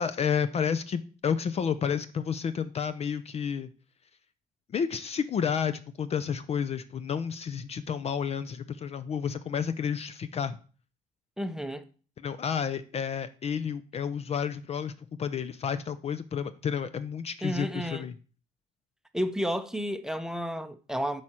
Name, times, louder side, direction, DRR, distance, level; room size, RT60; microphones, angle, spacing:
voice 1, 0.0-3.7 4.7-10.6 12.2-14.9 15.2-18.1, left 7 dB, 40° left, 0.5 m, -31 dB
voice 2, 11.4-11.8 17.4-18.0 19.1-21.2, equal, 5° right, 0.6 m, -31 dB
8.3 x 4.9 x 4.4 m
cardioid pair, 110°, 17 cm